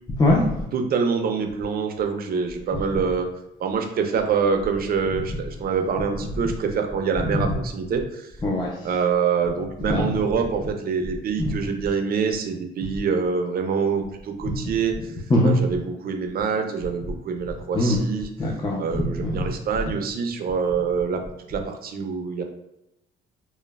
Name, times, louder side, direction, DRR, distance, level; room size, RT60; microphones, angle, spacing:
voice 1, 0.2-0.5 8.4-8.9 9.9-10.1 15.3-15.5 17.7-18.0 18.4-19.4, left 1 dB, 20° left, -3 dB, 0.5 m, -21 dB
voice 2, 0.7-3.3 3.6-8.3 8.8-15.0 15.4-18.3 18.8-21.2 21.5-22.4, right 6 dB, 50° right, 5 dB, 0.4 m, -25 dB
3.1 x 2.0 x 2.2 m, 0.86 s
cardioid pair, 90°, 20 cm